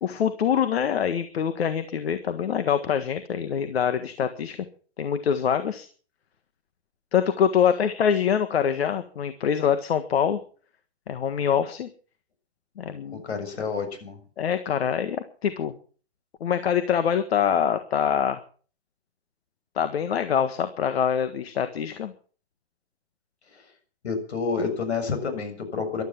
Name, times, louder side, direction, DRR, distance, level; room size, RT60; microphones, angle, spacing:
voice 1, 0.0-4.6 5.0-5.9 7.1-10.4 11.1-11.9 12.8-13.2 14.4-15.7 16.4-18.4 19.7-22.1, left 8 dB, 70° left, 11 dB, 1.7 m, -24 dB
voice 2, 13.1-14.2 24.0-26.0, left 5 dB, 85° left, 9 dB, 6.9 m, -29 dB
15.0 x 12.5 x 7.4 m, 0.42 s
hypercardioid pair, 145°, 32 cm